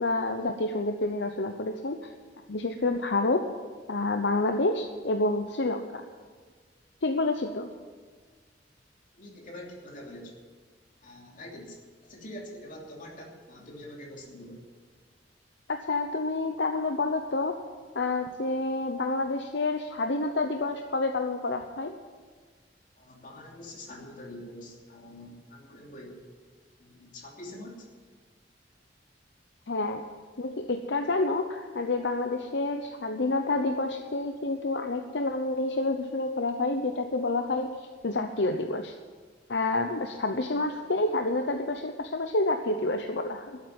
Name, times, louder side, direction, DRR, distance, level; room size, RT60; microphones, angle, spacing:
voice 1, 0.0-2.0 2.5-3.4 3.9-6.0 7.0-7.7 15.7-17.6 17.9-21.9 29.7-30.0 30.4-37.8 38.0-38.9 39.5-43.6, left 2 dB, 70° left, 5 dB, 0.8 m, -28 dB
voice 2, 9.1-10.3 11.0-11.8 12.0-14.6 23.0-26.2 26.8-27.9, left 1 dB, 45° left, -1 dB, 3.0 m, -45 dB
13.0 x 8.1 x 9.5 m, 1.5 s
head